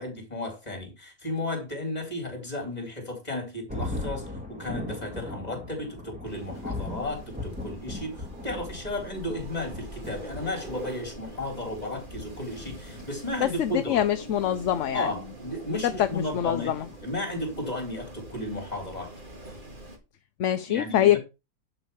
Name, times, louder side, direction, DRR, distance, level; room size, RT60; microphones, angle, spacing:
voice 1, 0.0-14.0 14.9-19.1 20.7-21.2, left 1 dB, 25° left, 4.0 m, -34 dB
Thunder, 3.7-17.7, left 2 dB, 5° right, 2.0 m, -40 dB
Wind, 6.2-20.0, right 1 dB, 35° right, 2.3 m, -44 dB
voice 2, 13.4-15.1 15.8-16.9 20.4-21.2, left 11 dB, 60° left, 0.9 m, -24 dB
11.0 x 5.5 x 5.5 m
omnidirectional pair, 1.6 m